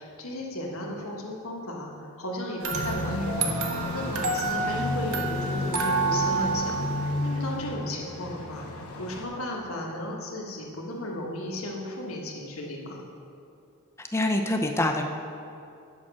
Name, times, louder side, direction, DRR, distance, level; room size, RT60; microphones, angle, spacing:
voice 1, 0.0-8.7 9.0-13.0, left 1 dB, 70° left, -1 dB, 1.5 m, -35 dB
sound 1, 2.6-7.6, right 4 dB, 80° right, 0.9 m, -29 dB
sound 2, 2.7-9.3, left 2 dB, 90° left, 1.0 m, -32 dB
voice 2, 14.0-15.0, left 1 dB, 10° left, 4 dB, 0.6 m, -25 dB
8.8 x 5.9 x 6.1 m, 2.5 s
head